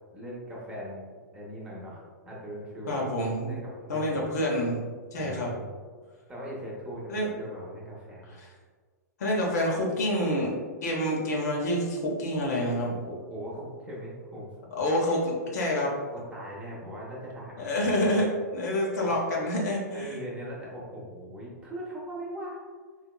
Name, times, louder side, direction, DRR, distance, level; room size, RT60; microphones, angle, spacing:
voice 1, 0.1-3.0 3.4-4.2 5.1-5.8 6.3-8.3 12.9-14.5 16.1-18.3 19.0-19.1 19.9-22.6, equal, 10° right, -5 dB, 0.9 m, -40 dB
voice 2, 2.9-3.5 3.9-4.8 5.1-5.5 7.1-7.3 9.2-10.5 10.8-12.9 14.8-15.9 17.6-20.1, left 1 dB, 65° left, -2 dB, 0.9 m, -27 dB
4.1 x 2.8 x 2.2 m, 1.5 s
figure-of-eight pair, 110°, 10 cm